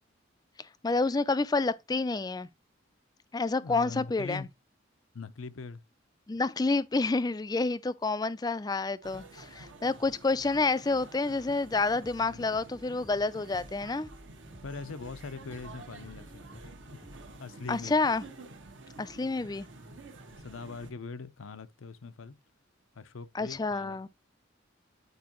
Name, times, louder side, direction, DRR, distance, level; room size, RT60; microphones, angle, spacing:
voice 1, 0.6-2.5 3.3-4.5 6.3-14.1 17.7-18.2 19.0-19.7 23.3-24.1, left 3 dB, 20° left, 0.4 m, -29 dB
voice 2, 3.6-4.5 5.1-5.8 12.2-12.5 14.6-17.0 17.4-18.1 19.8-20.1 20.4-22.4 22.9-24.1, left 4 dB, 90° left, 0.7 m, -42 dB
sound 1, 9.0-20.9, right 2 dB, 65° right, 1.2 m, -49 dB
sound 2, 11.8-17.4, equal, 10° right, 0.7 m, -54 dB
9.5 x 4.6 x 3.0 m
head